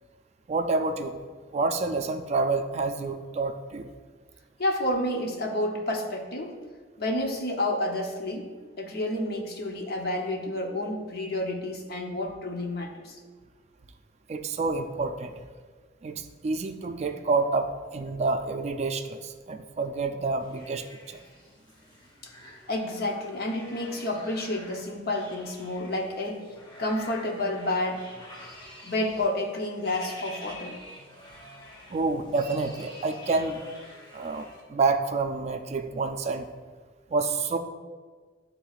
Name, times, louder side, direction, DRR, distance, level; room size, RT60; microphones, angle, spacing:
voice 1, 0.5-1.2 1.5-3.9 14.3-15.3 16.0-21.2 31.9-33.6 34.1-36.5 37.1-37.6, right 3 dB, 35° right, 7 dB, 0.3 m, -28 dB
voice 2, 4.6-6.5 7.0-8.5 8.8-13.2 22.2-22.3 22.7-26.4 26.8-28.0 28.8-30.8, left 1 dB, 60° left, 2 dB, 0.8 m, -30 dB
sound 1, 20.4-34.6, left 1 dB, 25° left, 1.0 m, -47 dB
11.0 x 3.8 x 2.4 m, 1.5 s
head